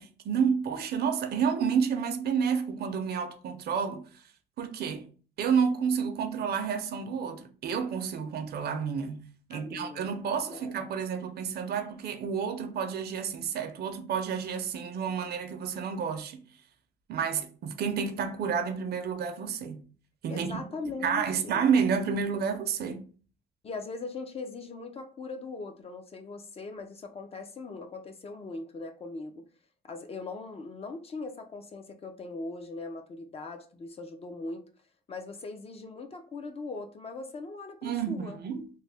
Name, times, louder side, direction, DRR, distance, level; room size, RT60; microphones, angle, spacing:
voice 1, 0.0-4.2 4.6-5.1 5.4-9.2 9.5-16.4 17.1-19.8 20.2-20.6 21.0-23.0 37.8-38.7, right 6 dB, 65° right, 0.6 m, -30 dB
voice 2, 9.5-10.1 10.5-10.8 20.3-21.7 23.6-29.5 29.8-34.6 35.1-38.4, left 3 dB, 35° left, 0.5 m, -40 dB
3.1 x 2.1 x 3.3 m
cardioid pair, 120°, 18 cm